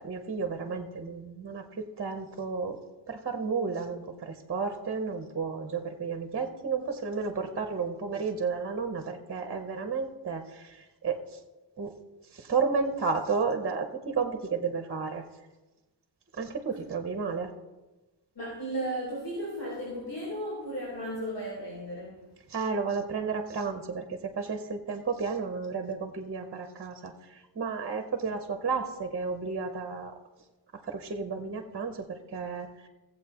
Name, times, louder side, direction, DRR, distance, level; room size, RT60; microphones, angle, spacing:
voice 1, 0.0-2.8 3.1-11.4 11.8-11.9 12.3-15.2 16.3-17.5 22.5-30.1 30.8-32.9, right 5 dB, 30° right, 0.8 m, -32 dB
voice 2, 18.3-22.3, right 1 dB, 65° left, 4.1 m, -35 dB
17.0 x 7.8 x 2.9 m
wide cardioid pair, 170°, 44 cm